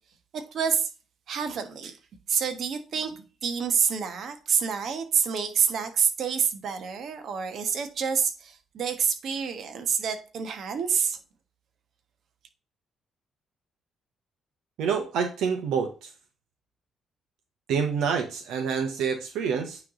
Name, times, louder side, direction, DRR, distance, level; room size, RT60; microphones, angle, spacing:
voice 1, 0.3-0.9 1.3-2.0 2.3-3.1 3.4-11.2, right 6 dB, 65° right, 1.3 m, -27 dB
voice 2, 14.8-16.1 17.7-19.8, right 6 dB, 85° right, 1.1 m, -27 dB
9.2 x 3.3 x 3.8 m
cardioid pair, 90°, 0 cm